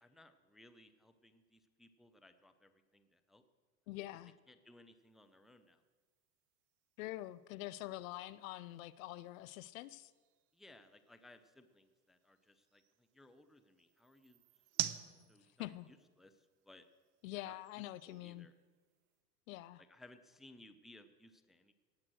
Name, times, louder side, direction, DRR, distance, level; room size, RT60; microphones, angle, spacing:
voice 1, 0.0-3.4 4.1-4.2 4.5-5.8 10.5-14.4 15.3-16.9 17.3-18.5 19.8-21.7, left 1 dB, ahead, 9 dB, 0.6 m, -62 dB
voice 2, 3.9-4.3 7.0-10.1 15.6-15.9 17.2-18.5 19.5-19.8, left 16 dB, 55° left, 17 dB, 0.6 m, -45 dB
sound 1, 5.0-19.2, right 13 dB, 55° right, 1.0 m, -50 dB
18.0 x 7.4 x 6.3 m, 1.4 s
hypercardioid pair, 90°, 49 cm